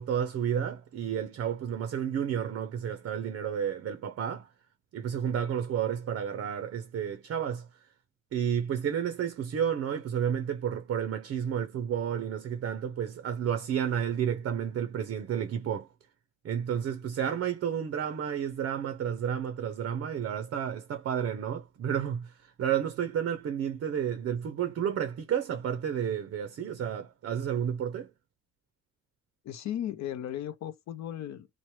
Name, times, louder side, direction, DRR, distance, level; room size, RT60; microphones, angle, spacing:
voice 1, 0.0-4.5 4.9-7.7 8.3-15.9 16.4-28.1, right 8 dB, 50° right, 0.5 m, -31 dB
voice 2, 29.4-31.5, left 11 dB, 65° left, 0.6 m, -36 dB
2.9 x 2.1 x 2.9 m
cardioid pair, 90°, 30 cm